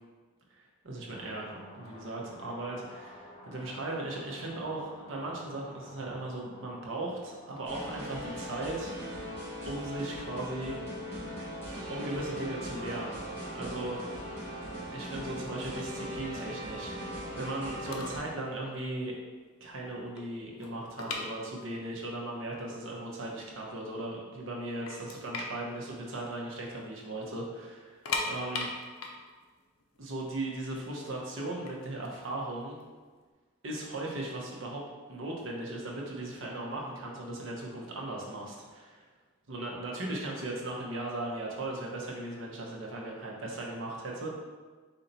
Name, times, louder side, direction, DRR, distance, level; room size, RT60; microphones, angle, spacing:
voice 1, 0.8-9.0 9.6-10.8 11.9-13.2 13.5-14.0 14.9-19.1 19.6-28.7 30.0-32.8 33.6-34.8 35.1-39.0 39.5-44.3, right 2 dB, 60° right, -2 dB, 0.9 m, -37 dB
sound 1, 1.1-8.3, equal, 30° left, 0.6 m, -51 dB
sound 2, 7.7-18.2, equal, 10° left, 1.2 m, -39 dB
sound 3, 17.6-17.7 17.9-18.3 18.6-18.8 19.3-19.4 19.7-22.0 22.2-22.3 23.0-23.1 23.4-24.1 24.5-24.6 24.9-26.8 27.1-27.2 27.8-30.7 31.5-33.2, left 4 dB, 90° left, 0.6 m, -38 dB
4.3 x 2.7 x 4.0 m, 1.4 s
head